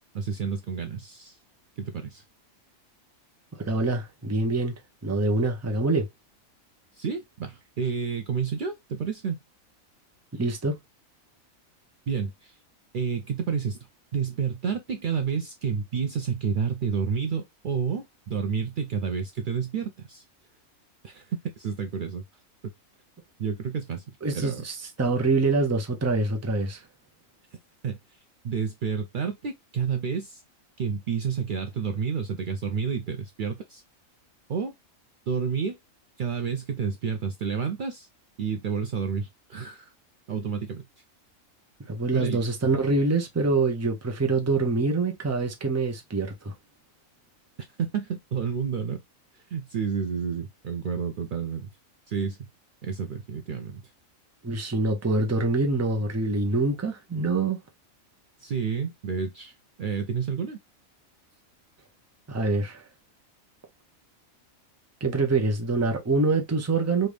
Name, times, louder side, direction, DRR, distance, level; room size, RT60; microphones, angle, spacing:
voice 1, 0.1-1.4 1.8-2.2 6.9-9.4 12.1-12.6 12.9-13.8 14.1-20.2 21.0-22.2 23.4-24.6 27.8-28.2 28.4-30.4 30.8-33.8 34.5-34.7 35.3-35.8 36.2-38.1 38.4-39.9 40.3-40.8 42.1-42.4 47.6-49.0 49.3-51.7 52.1-52.5 52.8-53.8 58.4-59.5 59.8-60.6, right 6 dB, 85° right, 0.4 m, -30 dB
voice 2, 3.6-6.1 10.3-10.8 24.2-26.8 41.9-46.5 54.4-57.6 62.3-62.8 65.0-67.1, right 3 dB, 20° right, 0.4 m, -25 dB
3.3 x 2.6 x 3.2 m
omnidirectional pair, 1.4 m